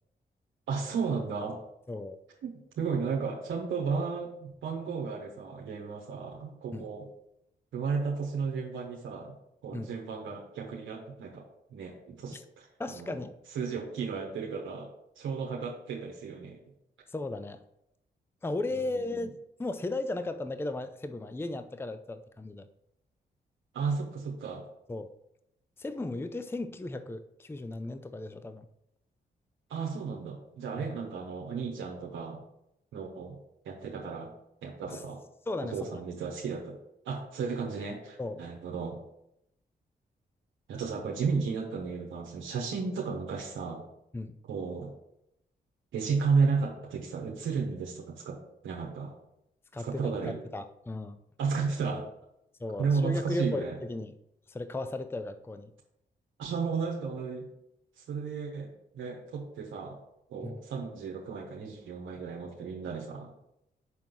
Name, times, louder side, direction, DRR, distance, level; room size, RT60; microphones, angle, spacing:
voice 1, 0.7-1.6 2.4-7.1 7.7-9.3 9.6-13.2 13.5-14.9 15.2-16.6 18.7-19.0 23.7-24.6 29.7-32.4 32.9-33.4 33.6-34.3 34.6-35.2 35.6-36.8 37.0-39.0 40.7-43.8 44.5-44.9 45.9-49.1 49.8-50.4 51.4-52.1 52.8-53.8 56.4-57.5 58.0-58.7 58.9-60.0 60.3-63.3, right 5 dB, 85° right, -1 dB, 1.0 m, -33 dB
voice 2, 12.8-13.3 17.1-17.6 18.4-22.7 24.9-25.1 25.8-28.7 30.8-30.9 34.9-35.0 35.5-36.0 38.2-38.5 44.1-44.3 49.7-51.2 52.6-54.1 54.5-55.7 60.4-60.6, left 2 dB, 10° left, 11 dB, 0.5 m, -36 dB
6.0 x 3.7 x 6.1 m, 0.81 s
supercardioid pair, 50°, 20 cm